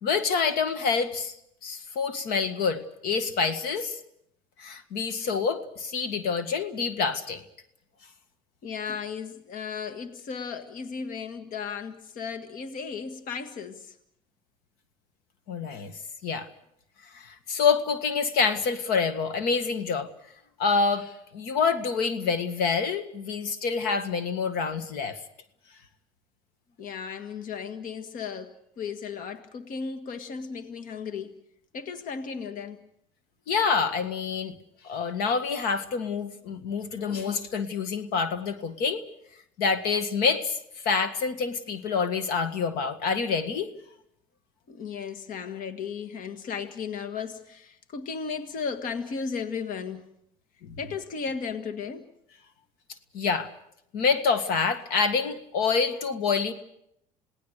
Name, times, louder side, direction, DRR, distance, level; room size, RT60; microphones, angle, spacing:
voice 1, 0.0-1.3 1.6-4.0 4.6-7.4 15.5-15.9 16.2-16.5 17.1-20.1 20.6-25.2 33.5-34.5 34.8-39.0 39.6-40.6 40.8-43.7 50.6-50.8 53.1-53.5 53.9-56.5, left 5 dB, 75° left, 1.8 m, -27 dB
voice 2, 8.6-13.9 26.8-31.3 31.7-32.8 44.7-50.1 50.8-52.0, left 6 dB, 60° left, 1.7 m, -35 dB
28.0 x 18.0 x 6.6 m
supercardioid pair, 85°, 16 cm